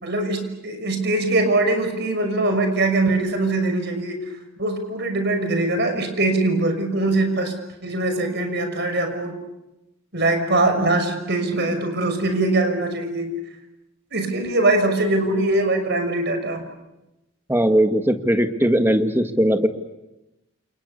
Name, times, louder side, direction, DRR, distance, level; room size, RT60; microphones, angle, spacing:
voice 1, 0.0-4.2 4.6-7.5 7.8-9.3 10.1-13.3 14.1-16.6, right 2 dB, 55° right, 6 dB, 6.1 m, -22 dB
voice 2, 17.5-19.7, right 1 dB, 10° right, 6 dB, 1.8 m, -19 dB
29.0 x 29.0 x 7.0 m, 0.97 s
head